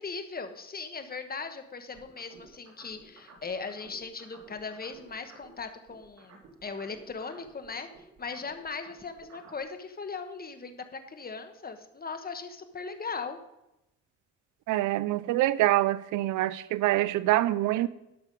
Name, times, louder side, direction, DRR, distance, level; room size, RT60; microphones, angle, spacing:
voice 1, 0.0-7.9 8.2-13.4, left 4 dB, 30° left, 8 dB, 1.2 m, -39 dB
sound 1, 1.9-5.6 5.9-9.6, right 4 dB, 60° right, 2.7 m, -54 dB
voice 2, 14.7-17.9, right 15 dB, 85° right, 17 dB, 0.6 m, -25 dB
12.0 x 5.7 x 5.2 m, 0.89 s
cardioid pair, 90°, 30 cm